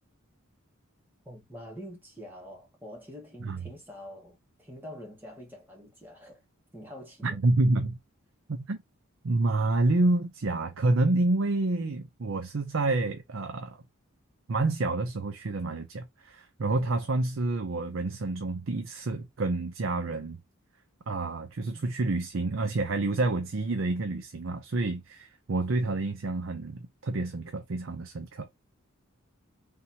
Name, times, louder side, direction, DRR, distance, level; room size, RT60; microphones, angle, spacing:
voice 1, 1.3-6.4 6.7-7.4, equal, 10° right, 1.8 m, -45 dB
voice 2, 7.2-8.0 8.5-8.8 9.2-13.8 14.5-20.4 21.1-28.5, right 2 dB, 65° right, 0.6 m, -28 dB
4.0 x 3.6 x 2.8 m
head